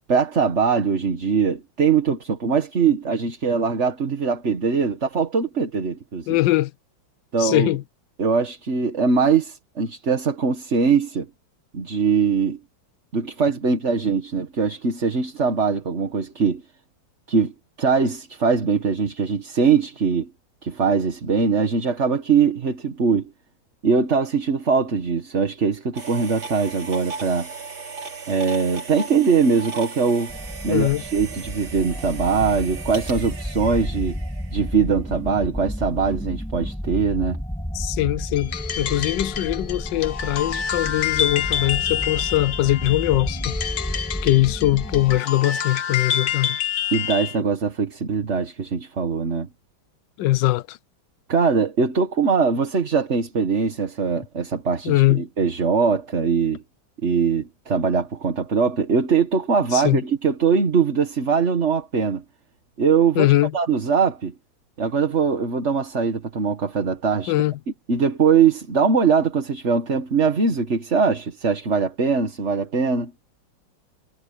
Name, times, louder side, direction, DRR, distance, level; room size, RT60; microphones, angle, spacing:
voice 1, 0.1-6.4 7.3-7.7 8.2-11.3 11.7-12.6 13.1-16.6 17.3-17.5 17.8-20.3 20.6-23.3 23.8-27.5 28.3-30.3 30.6-34.2 34.5-37.4 46.9-49.5 51.3-56.6 57.0-62.2 62.8-64.3 64.8-67.3 67.9-73.1, right 5 dB, 35° right, 1.9 m, -21 dB
voice 2, 6.3-6.7 7.4-7.8 30.7-31.0 37.7-43.6 44.2-46.6 50.2-50.8 54.8-55.2 59.7-60.0 63.2-63.5 67.3-67.5, left 16 dB, 75° left, 1.2 m, -21 dB
sound 1, 26.0-34.9, right 4 dB, 75° right, 4.5 m, -37 dB
sound 2, 30.3-45.2, equal, 5° left, 2.6 m, -32 dB
sound 3, 38.4-47.4, left 9 dB, 55° left, 1.4 m, -28 dB
omnidirectional pair, 2.2 m